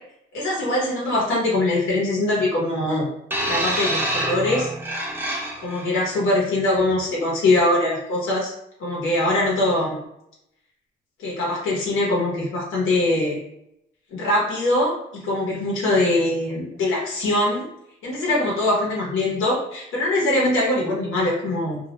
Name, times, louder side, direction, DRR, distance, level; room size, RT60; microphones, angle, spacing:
voice 1, 0.3-3.1 3.5-4.7 5.6-8.5 8.8-10.0 11.2-13.4 14.1-17.6 18.0-21.8, left 1 dB, 85° left, -3 dB, 0.8 m, -22 dB
sound 1, 3.3-5.9 6.8-6.9, right 1 dB, 10° right, 0.6 m, -26 dB
2.2 x 2.0 x 2.8 m, 0.81 s
cardioid pair, 90°, 20 cm